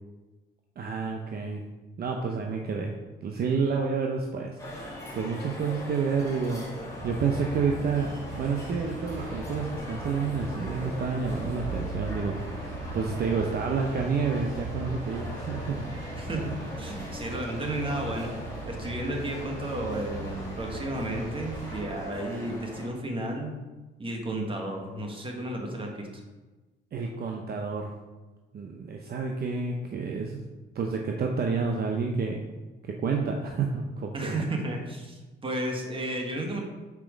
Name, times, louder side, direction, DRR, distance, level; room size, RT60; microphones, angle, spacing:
voice 1, 0.8-1.6 2.0-2.9 3.2-6.6 7.0-8.1 8.4-15.9 26.9-27.9 28.5-30.4 30.7-32.4 32.8-34.5, right 5 dB, 50° right, 1 dB, 0.7 m, -29 dB
sound 1, 4.6-22.9, left 1 dB, 15° left, 2.2 m, -40 dB
sound 2, 6.9-21.8, right 2 dB, 70° right, 1.6 m, -39 dB
voice 2, 16.8-18.3 18.6-23.5 24.0-26.1 34.1-36.6, right 1 dB, 25° right, 1 dB, 1.5 m, -33 dB
6.1 x 4.3 x 5.0 m, 1.2 s
cardioid pair, 90°, 20 cm